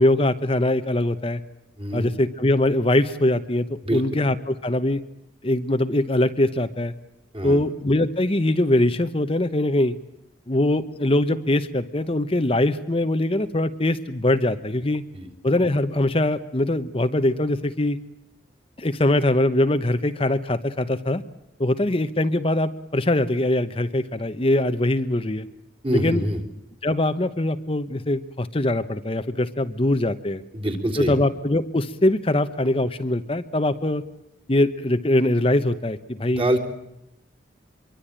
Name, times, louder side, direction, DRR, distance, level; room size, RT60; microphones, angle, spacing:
voice 1, 0.0-1.4 1.9-5.0 5.4-6.9 7.4-9.9 10.5-15.0 15.4-18.0 18.8-21.2 21.6-25.5 25.9-26.2 26.8-30.4 31.0-34.0 34.5-36.4, left 1 dB, 30° left, 9 dB, 1.0 m, -22 dB
voice 2, 25.8-26.4 30.5-31.2 36.3-36.6, right 1 dB, 30° right, 5 dB, 3.8 m, -24 dB
26.0 x 23.5 x 8.9 m, 0.82 s
head